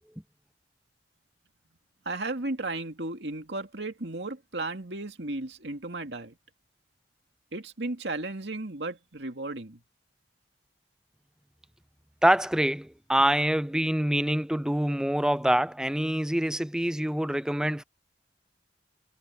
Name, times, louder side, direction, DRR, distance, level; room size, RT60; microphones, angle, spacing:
voice 1, 2.1-6.3 7.5-9.8, right 2 dB, 70° right, 2.5 m, -34 dB
voice 2, 12.2-17.8, right 1 dB, 5° right, 0.4 m, -25 dB
head